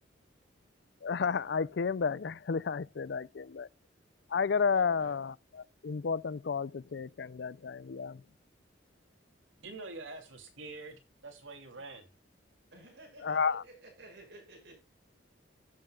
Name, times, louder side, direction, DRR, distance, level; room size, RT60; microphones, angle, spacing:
voice 1, 1.0-3.7 4.3-5.3 5.8-8.2 13.2-13.6, left 5 dB, 60° left, 0.4 m, -31 dB
voice 2, 4.7-5.2 12.7-14.7, right 1 dB, 60° right, 6.2 m, -53 dB
voice 3, 9.6-12.1, right 3 dB, 90° right, 2.9 m, -45 dB
17.0 x 7.1 x 2.3 m
head